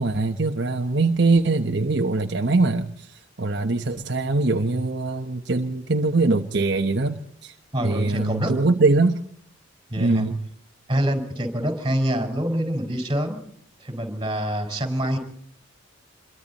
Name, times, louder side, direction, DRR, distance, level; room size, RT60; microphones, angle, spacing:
voice 1, 0.0-7.5 7.8-9.2 10.0-10.4, right 3 dB, 60° right, 4 dB, 1.1 m, -22 dB
voice 2, 7.7-8.5 9.9-10.3 10.9-13.4 13.8-15.2, equal, 25° right, 5 dB, 4.9 m, -25 dB
27.5 x 23.0 x 4.2 m, 0.62 s
head